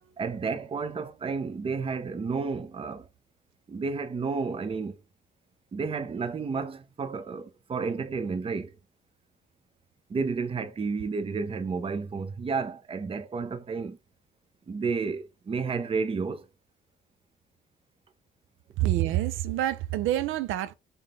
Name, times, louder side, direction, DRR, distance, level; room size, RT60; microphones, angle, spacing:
voice 1, 0.2-3.1 3.7-5.0 5.7-8.8 10.1-14.0 14.7-16.5, right 4 dB, 30° right, 0.5 m, -31 dB
voice 2, 18.8-20.7, right 13 dB, 80° right, 0.4 m, -27 dB
3.5 x 2.9 x 3.6 m
cardioid pair, 90°, 20 cm